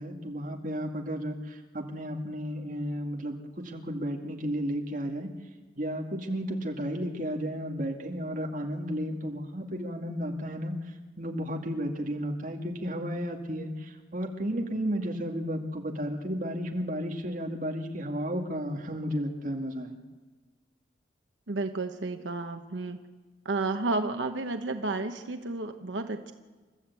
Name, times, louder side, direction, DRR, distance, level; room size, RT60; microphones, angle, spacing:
voice 1, 0.0-5.3 5.8-10.7 11.2-20.0, equal, 45° right, 2 dB, 2.1 m, -33 dB
voice 2, 21.5-23.0 23.4-26.3, right 3 dB, 85° right, 6 dB, 1.0 m, -32 dB
28.5 x 13.5 x 8.3 m, 1.3 s
head